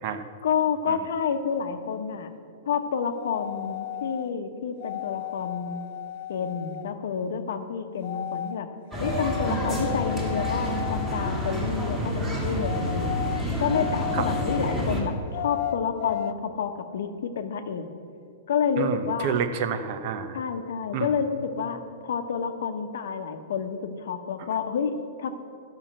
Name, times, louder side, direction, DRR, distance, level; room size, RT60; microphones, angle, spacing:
voice 1, 0.4-2.3 2.7-5.8 6.3-8.7 9.0-13.2 13.6-17.9 18.5-19.3 20.3-25.3, left 6 dB, 70° left, 8 dB, 0.9 m, -29 dB
sound 1, 3.2-4.3 4.8-6.9 8.0-8.6 8.9-11.5 12.6-14.9 15.3-16.3, left 11 dB, 50° left, 0.4 m, -34 dB
sound 2, 8.9-15.0, equal, 5° right, 1.7 m, -28 dB
voice 2, 18.8-20.4 20.9-21.1, right 7 dB, 40° right, 10 dB, 0.7 m, -29 dB
12.0 x 5.8 x 7.6 m, 2.5 s
supercardioid pair, 170°, 0 cm